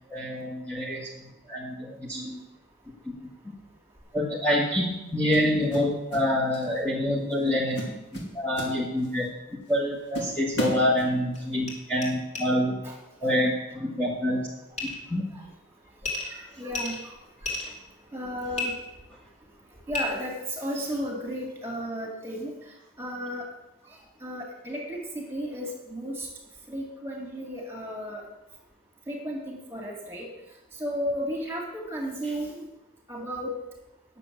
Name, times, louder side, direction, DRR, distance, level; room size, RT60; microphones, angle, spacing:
voice 1, 0.1-2.3 3.2-3.5 4.1-7.8 8.3-9.3 9.7-12.8 13.2-14.5 15.1-15.3 32.2-32.3, left 1 dB, 5° left, -5 dB, 1.5 m, -27 dB
sound 1, 4.0-4.2 5.3-6.3 6.5-6.8 7.3-7.5 7.8-9.3 9.7-9.8 10.1-11.5, equal, 60° left, 2.5 m, -34 dB
sound 2, 10.5-10.6 11.4-11.5 11.6-11.7 12.0-12.1 12.3-12.4 14.8-15.0 16.0-16.3 16.7-17.7 18.5-18.6 19.9-20.0, left 3 dB, 35° left, 2.9 m, -32 dB
voice 2, 16.2-17.1 17.4-17.5 18.1-18.7 19.9-22.5 23.0-23.5 24.2-26.3 26.7-28.2 29.1-30.3 30.8-32.6 33.1-33.5, equal, 10° right, 0 dB, 2.4 m, -34 dB
9.9 x 6.9 x 7.7 m, 0.97 s
head